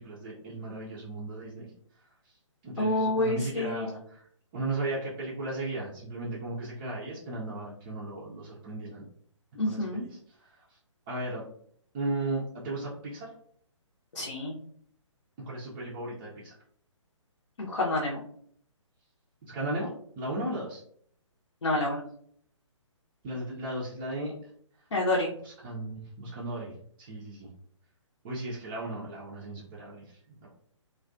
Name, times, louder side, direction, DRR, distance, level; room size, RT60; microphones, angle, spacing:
voice 1, 0.0-1.7 2.0-2.4 2.6-4.3 4.5-9.0 9.6-10.8 11.1-11.4 11.9-13.3 15.5-16.6 19.4-19.9 20.2-20.8 23.2-24.3 25.4-27.5 28.2-30.5, right 2 dB, 20° right, -7 dB, 0.4 m, -36 dB
voice 2, 2.8-3.9 9.5-10.0 14.1-14.5 17.6-18.2 21.6-22.0 24.9-25.3, left 2 dB, 65° left, -3 dB, 0.7 m, -28 dB
2.3 x 2.2 x 2.4 m, 0.63 s
figure-of-eight pair, 135°, 17 cm